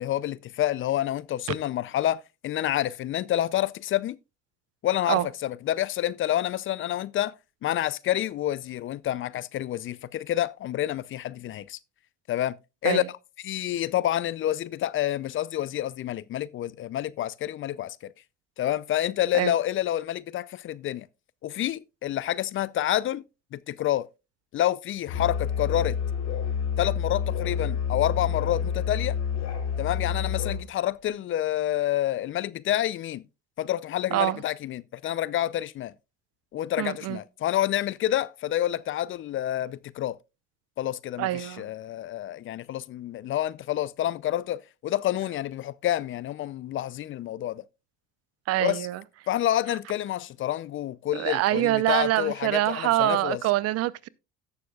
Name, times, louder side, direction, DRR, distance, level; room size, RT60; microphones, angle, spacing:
voice 1, 0.0-4.2 4.8-7.3 7.6-11.8 12.3-12.5 12.8-13.0 13.4-18.1 18.6-21.1 21.4-23.2 23.5-24.1 24.5-26.0 26.8-29.2 29.8-33.2 33.6-35.9 36.5-40.2 40.8-47.6 48.6-48.9 49.3-53.4, left 12 dB, 45° left, 0.5 m, -28 dB
Musical instrument, 25.1-30.7, left 7 dB, 65° left, 5.1 m, -28 dB
voice 2, 34.1-34.4 36.8-37.2 41.2-41.6 48.5-49.0 51.1-54.1, right 15 dB, 55° right, 0.6 m, -25 dB
17.0 x 6.9 x 2.3 m
hypercardioid pair, 70°, 30 cm